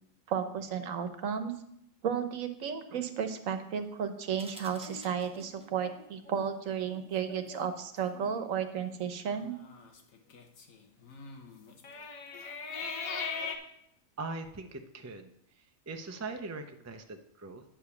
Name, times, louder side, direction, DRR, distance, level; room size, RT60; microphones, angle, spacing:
voice 1, 0.3-1.5 2.0-9.6, right 7 dB, 70° right, 8 dB, 1.3 m, -33 dB
sound 1, 4.4-5.8, right 1 dB, 5° right, 0.8 m, -52 dB
sound 2, 4.8-6.5 6.9-7.0 7.3-7.7 8.1-8.4 9.3-13.6, left 5 dB, 75° left, 1.5 m, -41 dB
voice 2, 14.2-15.3 15.5-17.6, right 3 dB, 20° right, 6 dB, 0.4 m, -41 dB
10.0 x 5.0 x 7.0 m, 0.76 s
omnidirectional pair, 1.4 m